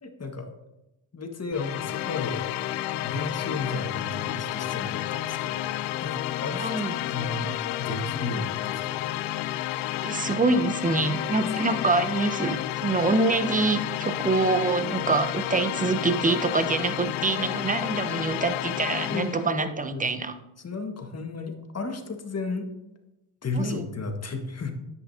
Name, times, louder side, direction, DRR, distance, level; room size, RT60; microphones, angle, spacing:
voice 1, 0.0-0.5 1.1-2.5 3.0-5.7 6.0-7.5 7.8-9.0 11.6-11.8 19.1-20.1 20.6-22.7 23.4-24.7, left 3 dB, 30° left, 3 dB, 1.7 m, -33 dB
sound 1, 1.5-19.5, left 14 dB, 85° left, 0.6 m, -31 dB
voice 2, 6.6-6.9 10.0-20.3 23.5-23.8, right 3 dB, 15° right, 10 dB, 0.9 m, -25 dB
10.0 x 8.4 x 2.8 m, 0.93 s
supercardioid pair, 65°, 49 cm